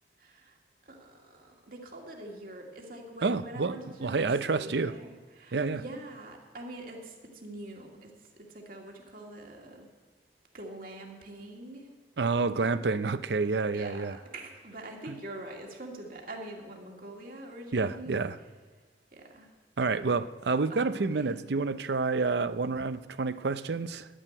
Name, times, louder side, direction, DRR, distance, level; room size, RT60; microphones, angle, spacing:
voice 1, 0.2-4.3 4.5-9.9 10.5-11.9 13.7-18.2 19.1-19.5 20.7-21.5, right 1 dB, 50° right, 1 dB, 2.1 m, -44 dB
voice 2, 3.2-3.7 4.0-4.9 5.5-5.8 12.2-14.2 17.7-18.4 19.8-24.1, right 4 dB, 70° right, 14 dB, 0.6 m, -28 dB
11.0 x 10.0 x 9.1 m, 1.4 s
head